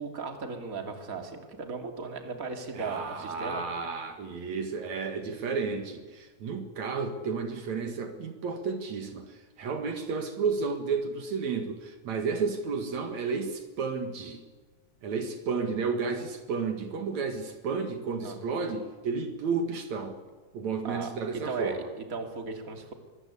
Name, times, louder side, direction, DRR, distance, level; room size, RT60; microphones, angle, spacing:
voice 1, 0.0-3.6 18.2-18.4 20.8-22.9, right 4 dB, 30° right, 4 dB, 3.1 m, -37 dB
voice 2, 2.7-14.4 15.0-20.2 20.5-21.9, right 5 dB, 70° right, 6 dB, 3.1 m, -32 dB
24.0 x 23.0 x 8.3 m, 1.3 s
omnidirectional pair, 3.4 m